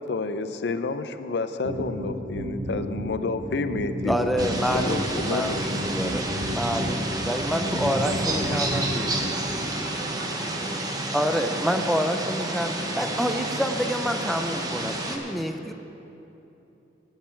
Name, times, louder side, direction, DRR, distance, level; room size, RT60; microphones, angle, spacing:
voice 1, 0.0-4.3 4.7-5.7, left 3 dB, 70° left, 10 dB, 0.5 m, -30 dB
sound 1, 1.6-9.6, equal, 50° right, 0.9 m, -32 dB
voice 2, 4.0-9.2 11.1-15.7, equal, ahead, 6 dB, 0.6 m, -27 dB
sound 2, 4.4-15.2, right 1 dB, 20° right, 1.0 m, -30 dB
voice 3, 8.4-9.5 9.8-12.5 12.8-14.0, right 1 dB, 80° right, 1 dB, 1.2 m, -44 dB
19.0 x 6.6 x 4.5 m, 3.0 s
head